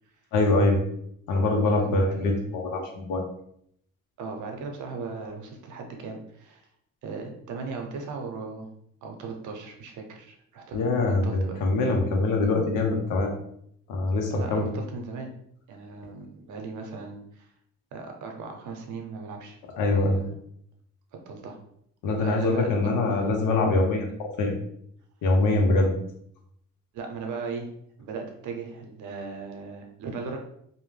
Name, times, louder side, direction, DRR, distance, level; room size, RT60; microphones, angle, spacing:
voice 1, 0.3-0.8 1.3-3.2 10.7-13.3 13.9-14.7 19.8-20.2 22.0-24.5 25.2-25.9, left 2 dB, 90° left, 2 dB, 0.7 m, -23 dB
voice 2, 1.8-2.4 4.2-6.6 7.0-8.7 9.0-11.6 14.3-15.3 15.7-17.5 17.9-19.6 19.9-20.3 21.3-21.6 22.2-23.2 25.5-25.6 26.9-27.7 28.0-30.4, right 4 dB, 75° right, 3 dB, 0.7 m, -37 dB
2.6 x 2.1 x 3.1 m, 0.70 s
cardioid pair, 90°, 30 cm